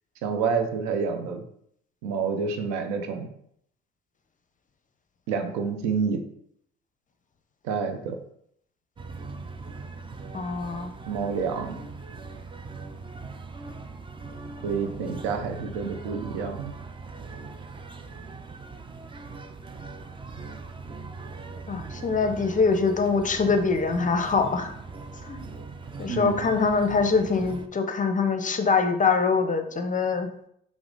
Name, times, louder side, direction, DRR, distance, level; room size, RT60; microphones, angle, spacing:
voice 1, 0.2-1.4 2.0-3.3 5.3-6.2 7.6-8.2 11.1-11.8 14.6-16.7 26.1-26.5, right 5 dB, 70° right, 6 dB, 0.7 m, -28 dB
sound 1, 9.0-27.7, right 4 dB, 15° right, 0.5 m, -40 dB
voice 2, 10.3-10.9 21.7-24.7 25.2-25.4 26.0-30.3, left 4 dB, 25° left, 7 dB, 0.6 m, -24 dB
5.8 x 2.1 x 3.9 m, 0.71 s
hypercardioid pair, 60°, 29 cm